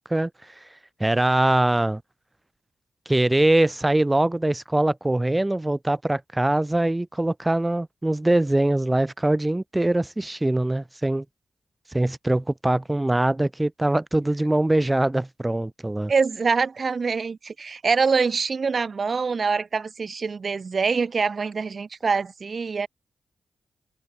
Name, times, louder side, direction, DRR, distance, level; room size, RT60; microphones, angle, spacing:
voice 1, 1.0-2.0 3.1-11.2 11.9-16.1, right 1 dB, 20° right, 0.9 m, -22 dB
voice 2, 16.1-22.9, right 5 dB, 55° right, 0.8 m, -24 dB
cardioid pair, 50°, 0 cm